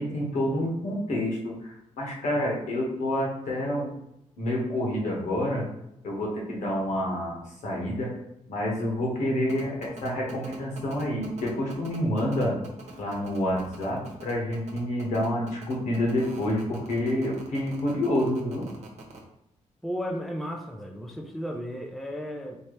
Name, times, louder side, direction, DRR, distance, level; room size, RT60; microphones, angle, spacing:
voice 1, 0.0-3.9 4.4-5.7 6.0-8.1 8.5-12.6 13.0-18.6, left 1 dB, 75° left, -2 dB, 1.4 m, -28 dB
sound 1, 9.5-19.2, right 4 dB, 65° right, 1.0 m, -44 dB
voice 2, 19.8-22.6, equal, ahead, 1 dB, 0.4 m, -34 dB
4.5 x 2.8 x 3.2 m, 0.82 s
wide cardioid pair, 165°, 13 cm